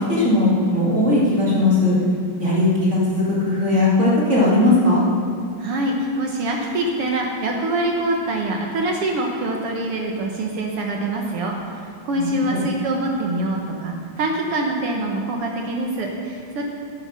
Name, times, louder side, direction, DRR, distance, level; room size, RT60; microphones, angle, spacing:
voice 1, 0.1-1.9 2.4-3.0 3.3-5.0 12.1-12.6, left 2 dB, 25° right, -6 dB, 2.4 m, -18 dB
voice 2, 5.6-11.6 12.0-16.6, right 2 dB, 60° right, 0 dB, 1.6 m, -24 dB
11.0 x 10.0 x 6.4 m, 2.4 s
omnidirectional pair, 3.7 m